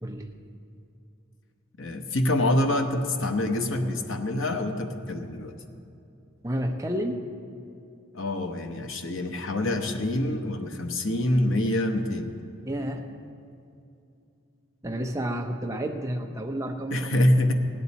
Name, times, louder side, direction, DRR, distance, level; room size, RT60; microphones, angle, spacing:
voice 1, 0.0-0.3 6.4-7.2 12.7-13.1 14.8-17.2, equal, 15° right, 3 dB, 0.7 m, -30 dB
voice 2, 1.8-5.6 8.1-12.3 16.9-17.5, left 1 dB, 65° left, 5 dB, 0.9 m, -26 dB
16.0 x 10.0 x 4.1 m, 2.6 s
head